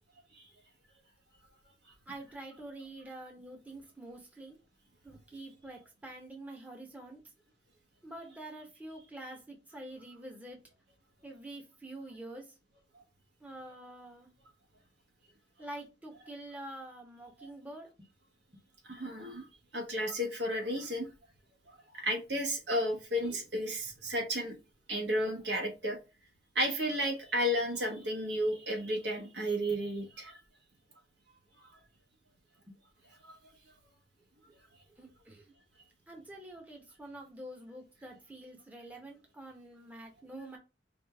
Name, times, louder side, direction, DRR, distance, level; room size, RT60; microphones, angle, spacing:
voice 1, 2.1-4.6 5.0-7.2 8.0-10.6 11.2-12.6 13.4-14.3 15.6-18.1 18.5-18.6 18.9-19.0 32.7-32.8 35.0-35.5 36.1-40.6, right 1 dB, 10° right, 0.9 m, -47 dB
voice 2, 18.8-19.4 19.7-21.1 21.7-24.5 24.9-26.0 26.5-30.4 33.2-33.5, equal, 65° right, 1.4 m, -33 dB
5.0 x 2.5 x 3.4 m
head